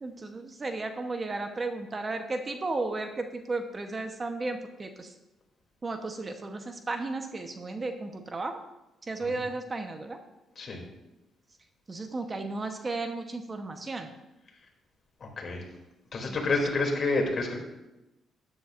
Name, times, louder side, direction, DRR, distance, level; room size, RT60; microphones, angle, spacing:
voice 1, 0.0-5.1 5.8-8.6 9.1-10.2 11.9-14.1 16.3-16.4, right 3 dB, 30° right, 5 dB, 1.0 m, -34 dB
voice 2, 15.2-15.6 16.1-17.6, left 3 dB, 45° left, 0 dB, 2.8 m, -29 dB
13.0 x 10.5 x 2.6 m, 0.96 s
cardioid pair, 90°, 0 cm